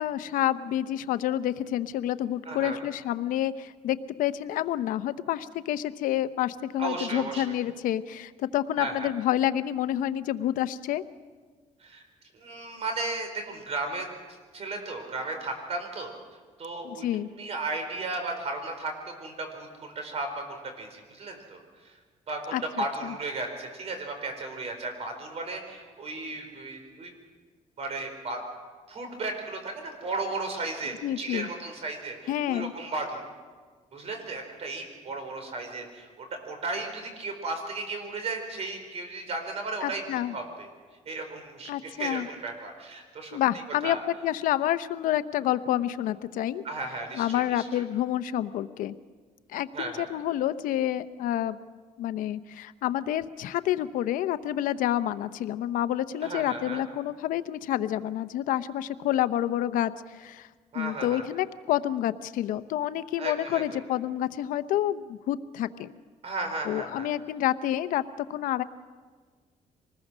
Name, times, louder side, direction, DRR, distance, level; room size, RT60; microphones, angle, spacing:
voice 1, 0.0-11.0 16.8-17.3 22.5-22.6 23.0-23.1 31.0-31.5 32.3-32.7 39.8-40.3 41.7-42.3 43.3-46.6 47.1-48.9 49.5-51.6 52.0-60.5 60.7-65.9 66.6-68.6, left 12 dB, 85° left, 13 dB, 0.8 m, -28 dB
voice 2, 2.4-2.8 6.8-7.5 8.8-9.1 11.8-12.0 12.3-14.1 14.5-16.1 16.6-17.0 17.4-18.9 19.2-22.0 22.3-27.1 27.8-28.4 28.9-33.2 33.9-40.7 41.1-43.4 43.8-44.0 46.6-47.8 49.7-50.1 56.2-56.8 60.7-61.2 63.2-63.8 66.2-67.1, right 3 dB, 50° right, 5 dB, 4.5 m, -35 dB
25.0 x 20.5 x 6.2 m, 1.5 s
cardioid pair, 125°, 14 cm